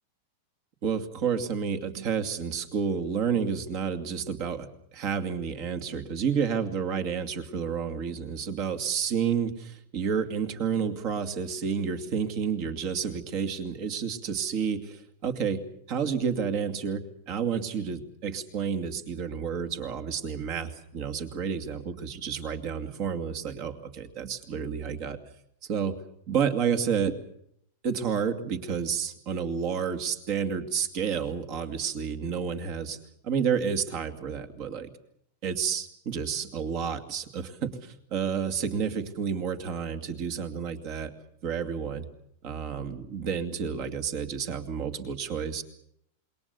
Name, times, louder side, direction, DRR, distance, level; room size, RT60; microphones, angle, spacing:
voice 1, 0.8-15.6 15.9-25.2 25.7-26.0 26.3-27.1 27.8-33.0 33.2-34.9 35.4-41.1 41.4-42.1 42.4-45.6, right 7 dB, 35° right, 8 dB, 2.4 m, -30 dB
27.5 x 22.0 x 7.0 m, 0.71 s
supercardioid pair, 170°, 0 cm